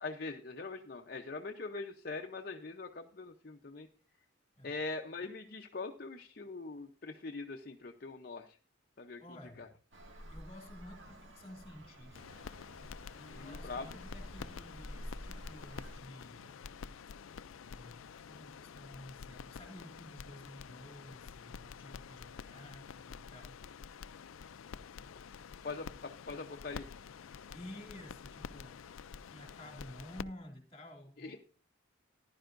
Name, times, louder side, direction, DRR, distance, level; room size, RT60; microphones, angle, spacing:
voice 1, 0.0-3.9 4.6-8.6 9.0-9.2 9.6-9.7 13.3-13.8 25.6-26.9 31.2-31.4, left 3 dB, 50° left, 4 dB, 0.7 m, -42 dB
voice 2, 9.2-9.8 10.3-12.5 13.2-16.7 17.6-23.8 27.5-31.4, left 1 dB, 30° left, 3 dB, 2.4 m, -52 dB
Traffic noise roadway noise, 9.9-16.0, equal, 70° right, 2.0 m, -50 dB
sound 1, 12.1-30.2, left 6 dB, 90° left, 0.4 m, -49 dB
15.0 x 11.0 x 2.6 m, 0.37 s
head